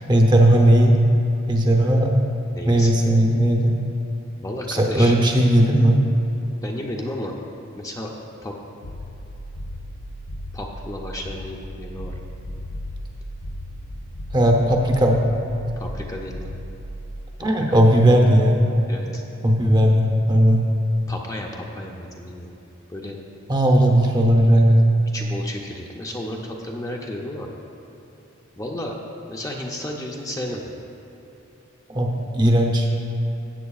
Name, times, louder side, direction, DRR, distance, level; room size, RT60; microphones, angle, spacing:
voice 1, 0.1-1.0 1.5-2.1 2.6-3.7 4.7-6.0 14.3-15.2 17.4-18.6 19.4-20.6 23.5-24.8 31.9-32.9, right 1 dB, 20° right, 2 dB, 0.7 m, -17 dB
voice 2, 2.5-2.9 4.4-5.1 6.6-7.3 7.8-8.1 8.4-8.6 10.5-12.1 15.8-16.5 17.4-17.9 18.9-19.2 21.1-22.5 22.9-23.2 25.1-27.5 28.6-29.0 29.3-30.6, left 1 dB, 15° left, 0 dB, 0.5 m, -32 dB
sound 1, 8.8-17.9, equal, 85° left, 0.7 m, -36 dB
15.5 x 8.2 x 2.4 m, 3.0 s
head